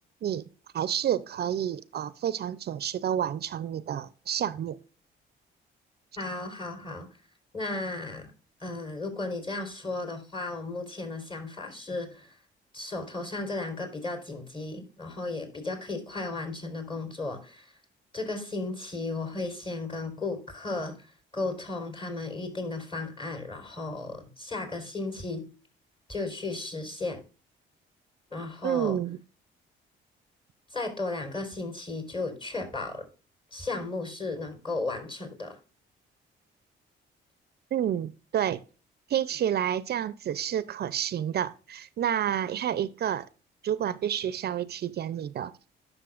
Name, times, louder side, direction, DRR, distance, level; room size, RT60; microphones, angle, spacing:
voice 1, 0.7-4.8 28.6-29.2 37.7-38.6 39.1-43.3 43.6-45.5, right 10 dB, 55° right, 0.5 m, -29 dB
voice 2, 6.2-7.1 7.5-8.3 8.6-12.4 12.7-17.7 18.1-25.5 26.1-27.2 28.3-29.0 30.7-33.0 33.5-35.6, left 3 dB, 25° left, 4.1 m, -35 dB
11.0 x 6.4 x 2.4 m
cardioid pair, 90°, 20 cm